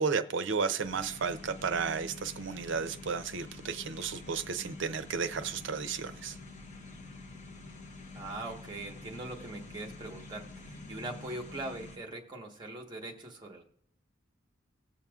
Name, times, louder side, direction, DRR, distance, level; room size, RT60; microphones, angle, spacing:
voice 1, 0.0-6.4, right 5 dB, 65° right, 0.6 m, -33 dB
sound 1, 0.8-12.0, left 3 dB, 35° left, 1.0 m, -47 dB
voice 2, 8.1-13.6, right 2 dB, 20° right, 1.2 m, -41 dB
19.0 x 6.9 x 2.4 m
head